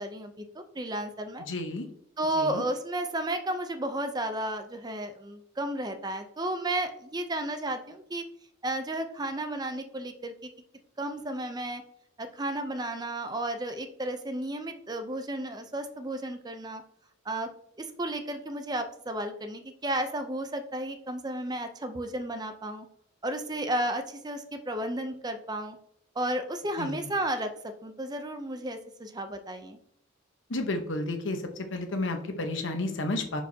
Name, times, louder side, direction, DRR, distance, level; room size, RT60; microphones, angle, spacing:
voice 1, 0.0-1.4 2.2-8.2 8.6-10.5 11.0-11.8 12.2-16.8 17.3-17.5 17.8-22.9 23.2-25.8 26.2-27.5 27.8-29.8, right 1 dB, 20° right, 7 dB, 0.5 m, -33 dB
voice 2, 1.5-1.8 2.4-2.6 26.8-27.0 30.5-31.4 31.7-33.4, left 2 dB, 70° left, 5 dB, 1.0 m, -31 dB
10.5 x 4.6 x 2.8 m, 0.70 s
head